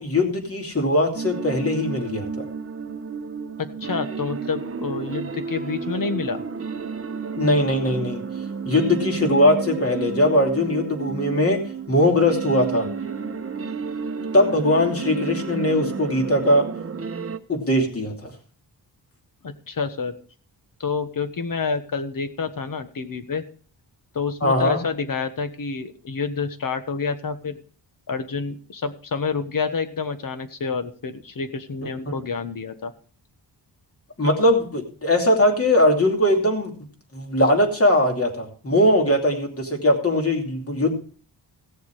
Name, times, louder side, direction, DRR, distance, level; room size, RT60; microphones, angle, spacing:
voice 1, 0.0-2.5 7.4-8.2 8.6-11.6 11.9-12.9 14.3-16.6 17.5-18.3 24.4-24.8 34.2-36.7 37.1-41.0, left 1 dB, 30° left, 2 dB, 2.8 m, -20 dB
sound 1, 1.1-17.4, right 5 dB, 30° right, 0.9 m, -31 dB
voice 2, 3.6-6.4 19.4-20.2 20.8-23.4 24.1-27.6 28.1-32.9, left 5 dB, 50° left, 10 dB, 1.4 m, -28 dB
16.0 x 7.0 x 4.9 m, 0.42 s
wide cardioid pair, 100°, 43 cm